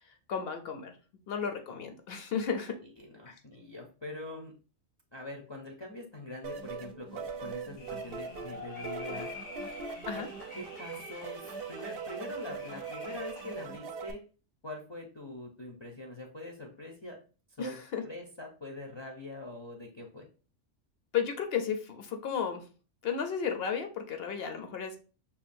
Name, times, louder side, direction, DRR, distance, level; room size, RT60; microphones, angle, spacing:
voice 1, 0.3-1.0 1.3-2.7 3.3-3.4 10.1-10.3 17.6-18.0 21.1-22.6 23.0-25.0, left 7 dB, 60° left, 6 dB, 0.8 m, -33 dB
voice 2, 3.0-4.5 5.1-9.3 10.1-10.2 10.5-14.2 14.6-17.2 17.6-17.8 18.0-20.3, left 2 dB, 30° left, 0 dB, 0.5 m, -43 dB
sound 1, 6.4-14.1, right 5 dB, 60° right, 0.8 m, -41 dB
sound 2, 7.8-13.6, left 2 dB, 90° left, 1.5 m, -47 dB
5.5 x 2.4 x 2.5 m, 0.35 s
omnidirectional pair, 1.2 m